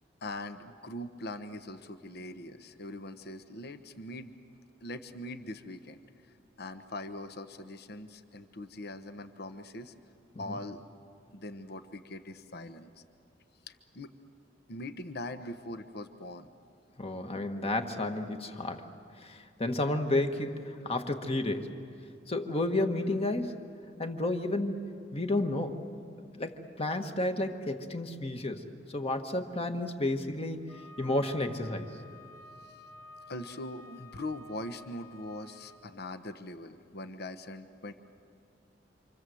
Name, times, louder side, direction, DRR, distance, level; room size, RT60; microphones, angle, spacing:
voice 1, 0.2-4.3 4.8-6.0 6.6-9.9 10.4-10.8 11.3-12.9 13.7-14.1 14.7-16.5 32.6-32.7 33.3-37.9, left 1 dB, 55° left, 9 dB, 1.1 m, -41 dB
voice 2, 17.0-18.9 19.2-21.8 22.3-23.7 24.0-24.8 25.1-25.8 26.3-30.6 31.0-31.9, left 2 dB, 30° left, 6 dB, 1.5 m, -31 dB
Wind instrument woodwind instrument, 30.7-35.8, left 1 dB, 15° left, 1.7 m, -52 dB
27.5 x 26.5 x 7.8 m, 2.4 s
head